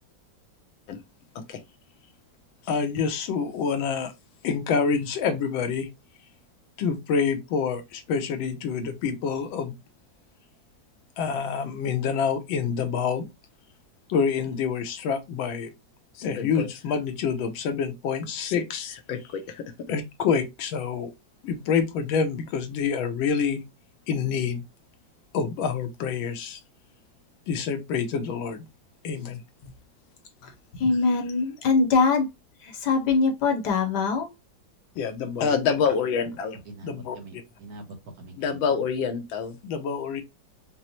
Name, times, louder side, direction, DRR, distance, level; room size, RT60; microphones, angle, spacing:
voice 1, 2.6-4.1 4.4-5.9 6.8-9.7 11.2-13.3 14.1-15.7 16.1-21.1 21.4-23.6 24.1-24.6 25.3-26.6 27.5-28.7 29.0-29.4 34.9-36.6 36.8-37.2 38.4-40.2, left 6 dB, 90° left, 1.5 m, -27 dB
voice 2, 30.4-32.3 32.6-34.3, left 4 dB, 65° left, 1.2 m, -23 dB
voice 3, 36.6-38.8, right 2 dB, 60° right, 1.2 m, -44 dB
5.3 x 2.0 x 2.9 m
omnidirectional pair, 2.1 m